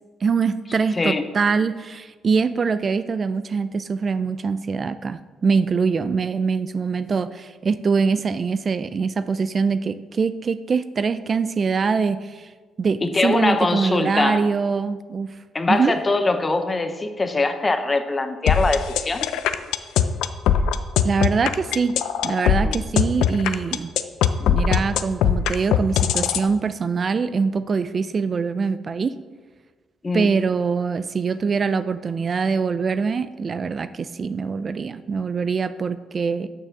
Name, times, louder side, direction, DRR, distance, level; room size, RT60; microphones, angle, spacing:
voice 1, 0.2-12.5 12.8-15.3 15.7-15.9 21.0-21.9 22.2-23.9 24.4-29.1 30.1-36.5, right 5 dB, 40° right, 13 dB, 0.3 m, -23 dB
voice 2, 0.9-1.2 13.0-14.4 15.5-19.3 22.6-22.8 30.0-30.3, left 3 dB, 25° left, 8 dB, 0.8 m, -22 dB
sound 1, 18.5-26.4, left 9 dB, 85° left, 0.4 m, -20 dB
6.7 x 6.1 x 6.5 m, 1.4 s
cardioid pair, 90°, 0 cm